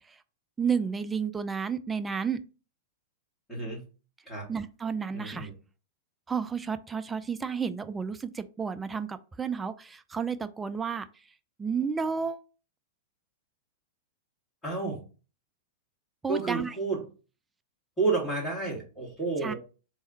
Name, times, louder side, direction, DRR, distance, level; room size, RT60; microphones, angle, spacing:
voice 1, 0.6-2.4 4.5-5.5 6.3-11.1 11.6-12.4 16.2-16.8 19.4-19.5, right 6 dB, 15° right, 0.4 m, -31 dB
voice 2, 3.5-3.8 4.3-4.5 5.1-5.5 14.6-15.0 16.3-17.0 18.0-19.6, right 3 dB, 10° left, 2.4 m, -30 dB
3.5 x 3.3 x 4.0 m
figure-of-eight pair, 100°, 0 cm